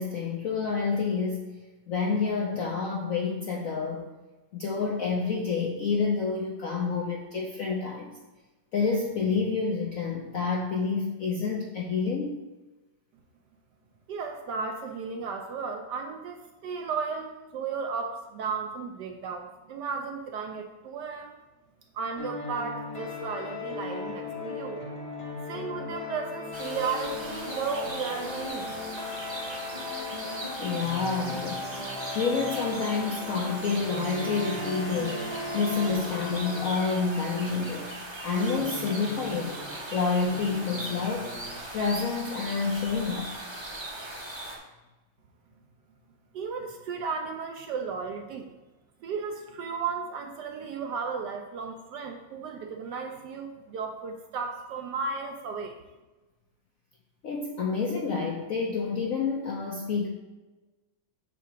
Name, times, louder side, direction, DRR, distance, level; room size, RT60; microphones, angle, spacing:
voice 1, 0.0-1.5 1.9-4.0 4.5-8.2 8.7-12.4 30.6-31.7 32.1-35.2 35.5-37.9 38.2-39.6 39.9-41.3 41.7-43.3 57.2-60.1, left 5 dB, 70° left, -1 dB, 0.8 m, -28 dB
voice 2, 14.1-21.4 21.9-24.8 25.5-28.7 46.3-48.5 49.0-55.8, right 5 dB, 70° right, 4 dB, 1.0 m, -34 dB
sound 1, 22.2-36.7, left 3 dB, 25° left, 0.9 m, -37 dB
sound 2, 26.5-44.6, right 1 dB, 20° right, 0.7 m, -39 dB
sound 3, 33.8-41.9, right 4 dB, 45° right, 0.9 m, -40 dB
8.2 x 2.8 x 5.8 m, 1.1 s
omnidirectional pair, 2.2 m